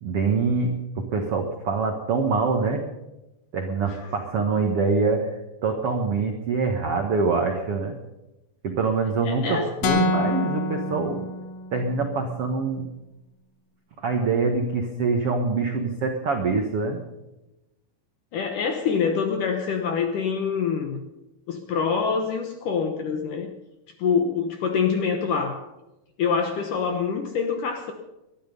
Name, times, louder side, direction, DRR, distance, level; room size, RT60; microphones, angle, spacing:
voice 1, 0.0-2.8 3.5-5.3 5.6-8.0 8.6-11.2 11.7-12.9 14.0-17.0, right 4 dB, 90° right, 4 dB, 1.3 m, -25 dB
voice 2, 9.3-9.7 18.3-21.0 21.5-23.5 24.0-25.6 26.2-27.9, left 6 dB, 70° left, 5 dB, 2.0 m, -25 dB
sound 1, 9.8-11.9, left 2 dB, 85° left, 4.3 m, -26 dB
21.5 x 12.0 x 5.4 m, 0.97 s
omnidirectional pair, 5.2 m